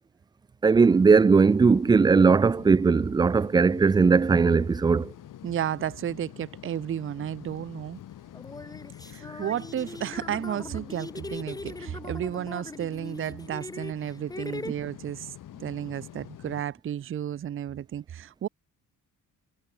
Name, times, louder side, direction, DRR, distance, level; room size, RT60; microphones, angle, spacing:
voice 1, 0.6-5.1, right 5 dB, 15° right, 0.3 m, -19 dB
sound 1, 0.7-16.6, left 12 dB, 60° left, 4.4 m, -47 dB
voice 2, 5.4-8.0 9.1-15.3 15.6-18.5, right 10 dB, 35° right, 0.8 m, -32 dB
sound 2, 7.6-7.7 8.3-14.7, left 2 dB, 10° left, 2.1 m, -40 dB
cardioid pair, 175°, 35 cm